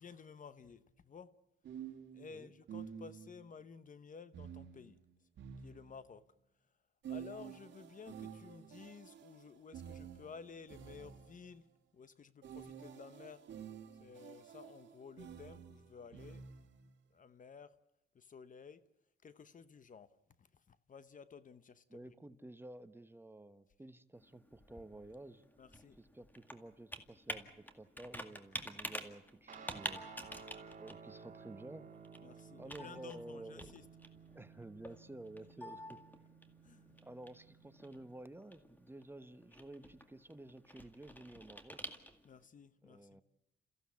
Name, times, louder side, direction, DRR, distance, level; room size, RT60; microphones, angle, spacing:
voice 1, 0.0-1.3 2.1-5.0 5.6-6.2 7.1-11.7 11.9-13.5 14.0-16.4 17.1-17.7 18.1-18.8 19.2-22.1 25.6-26.0 32.2-33.8 36.6-37.0 42.2-43.2, left 6 dB, 40° left, 1.0 m, -54 dB
sound 1, 0.6-0.8 1.6-3.5 4.3-6.3 7.0-11.6 12.4-16.9, right 8 dB, 65° right, 2.1 m, -50 dB
voice 2, 21.9-25.4 26.0-30.0 30.8-31.9 32.5-33.8 34.3-36.0 37.0-41.8 42.8-43.2, right 1 dB, 10° right, 1.1 m, -52 dB
Computer keyboard, 24.2-42.4, left 1 dB, 10° left, 2.1 m, -50 dB
Guitar, 29.5-38.2, right 6 dB, 40° right, 2.7 m, -56 dB
28.5 x 15.5 x 8.5 m
cardioid pair, 90°, 20 cm